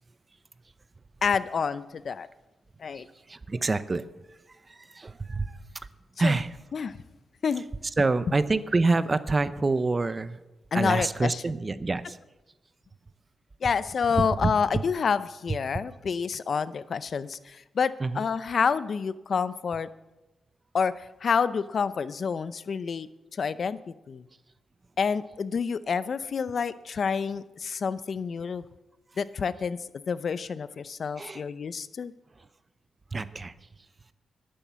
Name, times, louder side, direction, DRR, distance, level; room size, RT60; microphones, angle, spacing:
voice 1, 1.2-2.3 2.8-3.1 6.2-6.3 6.7-7.0 7.4-7.7 10.7-11.3 13.6-19.9 20.7-24.2 25.0-28.6 29.2-29.8 30.1-32.1, left 6 dB, 55° left, 15 dB, 0.6 m, -28 dB
voice 2, 2.9-5.9 6.2-6.6 8.0-10.4 10.7-12.2 14.2-14.8 15.5-15.6 18.0-18.3 31.2-31.4 32.3-32.5 33.1-33.7, right 3 dB, 30° right, 14 dB, 0.7 m, -27 dB
11.5 x 10.5 x 6.9 m, 1.0 s
cardioid pair, 85°, 0 cm